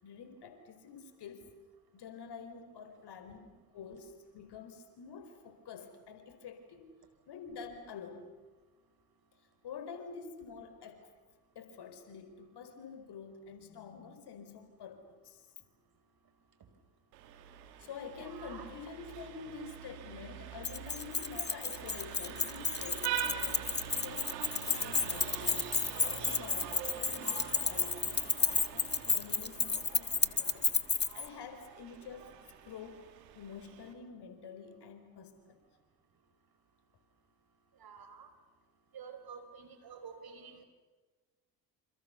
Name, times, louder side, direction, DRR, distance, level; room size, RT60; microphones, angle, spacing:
voice 1, 0.0-1.5 1.9-6.9 7.3-8.3 9.6-11.1 11.5-15.5 17.8-24.3 24.7-32.3 32.6-33.0 33.3-35.6, left 5 dB, 55° left, 8 dB, 4.9 m, -48 dB
Vehicle horn car horn honking, 17.1-33.9, right 10 dB, 80° right, 2.8 m, -44 dB
voice 2, 18.2-18.7 37.8-38.3 38.9-40.6, right 6 dB, 50° right, 8 dB, 5.7 m, -49 dB
Keys jangling, 20.6-31.3, left 5 dB, 20° left, 1.6 m, -31 dB
28.5 x 27.5 x 7.1 m, 1.2 s
hypercardioid pair, 55°, 48 cm